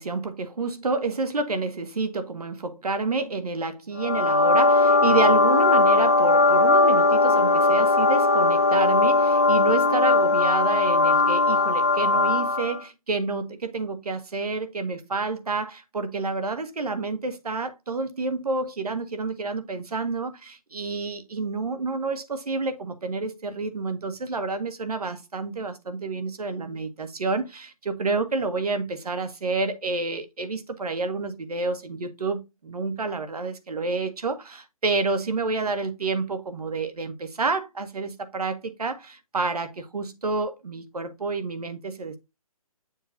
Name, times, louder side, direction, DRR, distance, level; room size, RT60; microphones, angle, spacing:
voice 1, 0.0-42.2, right 3 dB, 85° right, 1.6 m, -29 dB
sound 1, 4.0-12.8, left 3 dB, 25° left, 0.4 m, -19 dB
7.2 x 2.7 x 5.7 m
hypercardioid pair, 180°, 19 cm